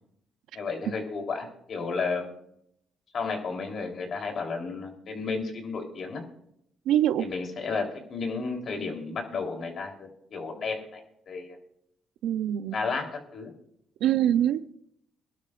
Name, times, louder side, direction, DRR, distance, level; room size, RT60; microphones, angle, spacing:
voice 1, 0.5-2.3 3.1-6.2 7.2-11.0 11.3-11.6 12.7-13.5, left 4 dB, 55° left, 3.7 m, -32 dB
voice 2, 6.9-7.3 12.2-12.8 14.0-14.7, right 11 dB, 90° right, 0.6 m, -24 dB
22.5 x 12.0 x 2.6 m
cardioid pair, 90°, 0 cm